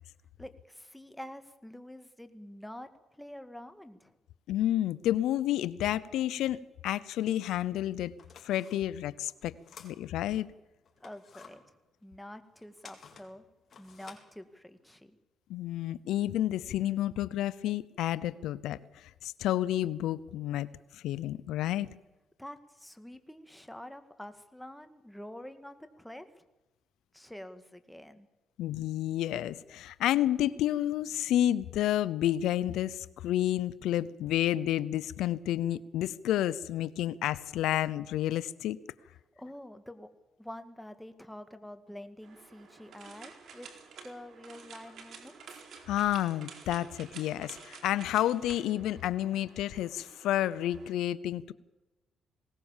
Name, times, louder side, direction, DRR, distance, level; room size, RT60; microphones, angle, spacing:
voice 1, 0.4-4.1 11.0-13.5 13.8-15.2 22.4-26.5 27.1-28.3 39.4-40.1 40.4-43.7 44.0-45.6, left 1 dB, 5° left, 8 dB, 1.9 m, -47 dB
voice 2, 4.5-8.1 8.4-9.5 9.8-10.5 15.5-20.7 20.9-21.9 28.6-38.8 45.9-51.5, left 13 dB, 85° left, 17 dB, 0.6 m, -30 dB
sound 1, 8.1-10.4 10.8-15.0, left 6 dB, 50° left, 4.0 m, -54 dB
sound 2, 42.2-50.9, right 6 dB, 65° right, 4.3 m, -51 dB
20.5 x 18.5 x 7.3 m, 1.0 s
cardioid pair, 90°, 0 cm